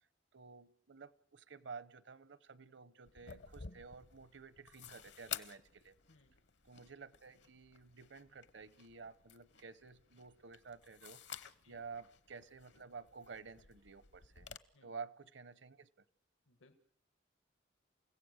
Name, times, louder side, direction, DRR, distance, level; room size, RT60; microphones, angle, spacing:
voice 1, 0.3-5.9 6.6-14.5 14.8-15.9, right 5 dB, 65° right, 17 dB, 0.9 m, -52 dB
sound 1, 3.1-14.6, left 9 dB, 65° left, 0.9 m, -53 dB
voice 2, 6.1-6.4 11.6-11.8 14.7-14.9 16.5-16.8, left 2 dB, 85° left, 9 dB, 1.5 m, -67 dB
29.5 x 16.5 x 6.5 m, 0.71 s
head